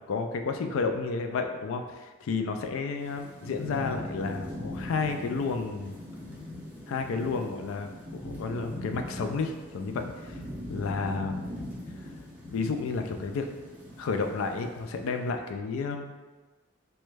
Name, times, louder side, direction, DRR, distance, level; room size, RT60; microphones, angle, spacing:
voice 1, 0.1-5.9 6.9-10.4 10.7-11.5 12.5-13.5 14.0-16.1, left 4 dB, 80° left, 6 dB, 0.3 m, -31 dB
Thunderstorm / Rain, 3.0-15.2, left 1 dB, 5° right, 0.5 m, -41 dB
3.0 x 2.2 x 3.2 m, 1.2 s
head